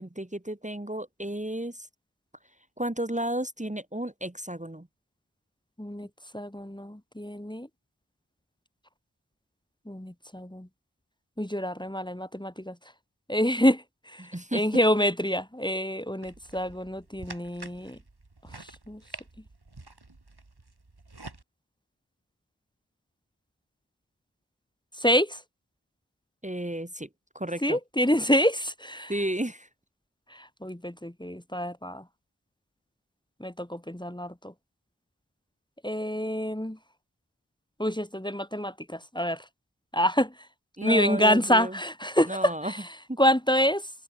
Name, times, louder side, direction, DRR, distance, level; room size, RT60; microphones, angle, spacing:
voice 1, 0.0-1.9 2.8-4.9 14.2-14.6 26.4-27.1 27.4-27.8 29.1-29.7 40.8-41.7 42.3-42.7, right 1 dB, 20° right, 2.0 m, -32 dB
voice 2, 5.8-6.1 6.3-7.7 9.9-10.7 11.4-12.8 13.3-18.0 18.4-19.0 24.9-25.4 27.6-29.1 30.3-32.1 33.4-34.5 35.8-36.8 37.8-39.5 39.9-40.5 40.8-43.9, equal, 10° left, 2.3 m, -27 dB
sound 1, 16.2-21.4, right 2 dB, 75° right, 7.4 m, -47 dB
wide cardioid pair, 40°, 39 cm